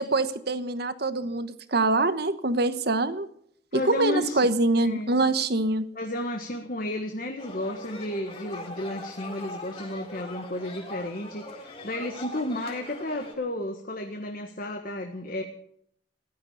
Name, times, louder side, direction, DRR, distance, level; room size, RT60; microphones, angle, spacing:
voice 1, 0.0-3.3 3.7-5.9, right 2 dB, 50° right, 12 dB, 1.2 m, -24 dB
voice 2, 3.7-4.4 4.8-5.1 5.9-15.4, left 1 dB, 45° left, 4 dB, 1.5 m, -32 dB
sound 1, 7.4-13.3, left 2 dB, 30° left, 4.2 m, -41 dB
16.0 x 12.5 x 6.6 m, 0.66 s
head